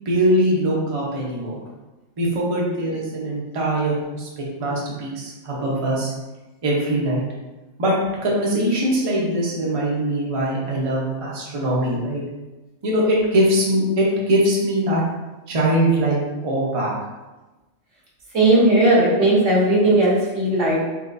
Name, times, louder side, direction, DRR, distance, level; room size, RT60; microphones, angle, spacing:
voice 1, 0.1-1.6 2.2-6.1 6.6-7.2 7.8-7.9 8.2-12.2 12.8-15.0 15.5-16.9, right 1 dB, 35° right, -4 dB, 0.7 m, -22 dB
voice 2, 18.3-20.9, right 1 dB, 65° right, -5 dB, 1.4 m, -17 dB
4.3 x 2.9 x 2.6 m, 1.1 s
omnidirectional pair, 1.3 m